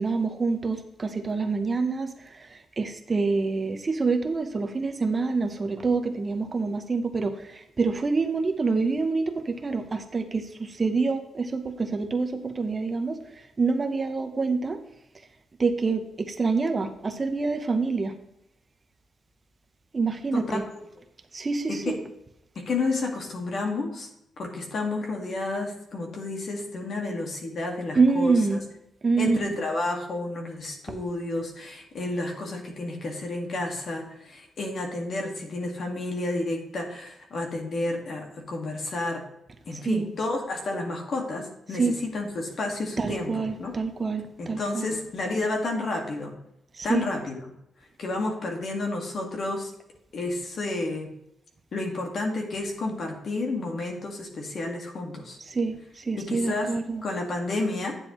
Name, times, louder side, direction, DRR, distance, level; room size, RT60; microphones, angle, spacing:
voice 1, 0.0-2.1 2.4-2.5 2.8-13.2 13.6-14.8 15.6-18.1 19.9-20.6 21.3-22.0 27.9-28.6 29.0-29.6 39.7-40.1 41.7-42.0 43.0-44.9 46.8-47.0 55.5-57.1, right 4 dB, 35° right, 7 dB, 0.9 m, -26 dB
voice 2, 22.6-24.1 24.4-28.6 29.2-39.2 39.7-43.7 44.4-46.4 46.8-47.4 48.0-49.7 50.1-51.1 51.7-55.4 56.2-56.7 57.0-58.0, left 2 dB, 60° left, 2 dB, 1.8 m, -31 dB
9.8 x 7.4 x 3.1 m, 0.82 s
cardioid pair, 75°, 0 cm